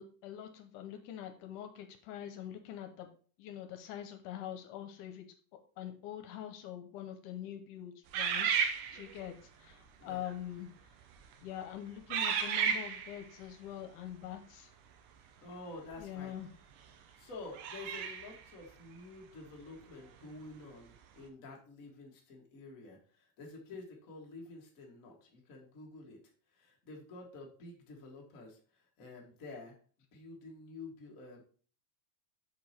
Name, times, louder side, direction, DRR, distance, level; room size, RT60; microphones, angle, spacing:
voice 1, 0.0-3.1 3.4-5.3 5.8-8.7 8.9-10.7 11.4-14.7 16.0-16.5, left 11 dB, 80° left, 7 dB, 2.2 m, -44 dB
sound 1, 8.1-9.3 10.1-10.3 11.0-11.3 12.1-13.2 15.9-16.0 17.5-18.4, right 7 dB, 85° right, 2.3 m, -33 dB
voice 2, 15.4-16.3 17.2-26.2 26.5-29.7 30.1-31.4, left 3 dB, 40° left, -1 dB, 1.3 m, -49 dB
6.2 x 4.9 x 4.2 m, 0.42 s
omnidirectional pair, 3.7 m